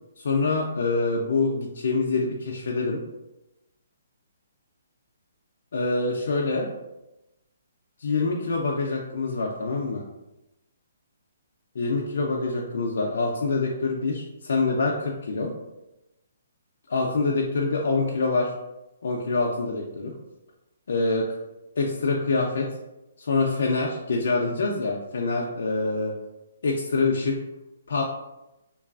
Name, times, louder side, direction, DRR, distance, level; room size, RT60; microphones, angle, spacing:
voice 1, 0.2-3.0 5.7-6.7 8.0-10.0 11.8-15.5 16.9-18.5 19.0-20.1 20.9-21.3 21.8-22.7 23.2-26.1 26.6-27.4 27.9-28.0, left 3 dB, 60° left, -2 dB, 0.4 m, -25 dB
3.1 x 2.3 x 2.3 m, 0.95 s
hypercardioid pair, 175°, 0 cm